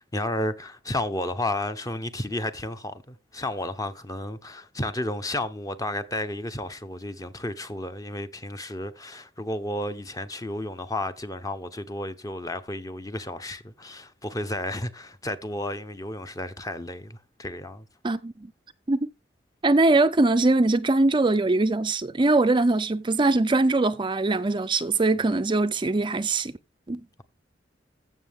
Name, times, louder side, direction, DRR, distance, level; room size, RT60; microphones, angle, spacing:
voice 1, 0.1-17.9, left 1 dB, 20° left, 0.9 m, -32 dB
voice 2, 19.6-26.5 26.9-27.0, right 2 dB, 25° right, 0.5 m, -22 dB
15.0 x 6.5 x 3.6 m
head